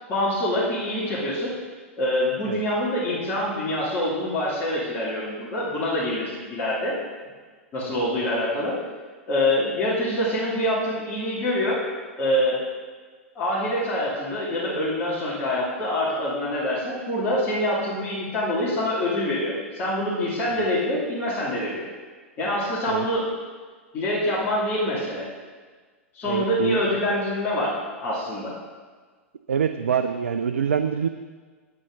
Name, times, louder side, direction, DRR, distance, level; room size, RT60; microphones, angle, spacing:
voice 1, 0.1-1.5 2.0-7.0 7.7-8.8 9.3-11.8 12.2-12.6 13.3-21.8 22.4-23.3 23.9-25.3 26.1-28.5, left 1 dB, 30° left, -8 dB, 2.5 m, -25 dB
voice 2, 26.3-26.8 29.5-31.1, right 7 dB, 70° right, 9 dB, 0.4 m, -24 dB
9.2 x 8.7 x 3.8 m, 1.5 s
figure-of-eight pair, 95°, 7 cm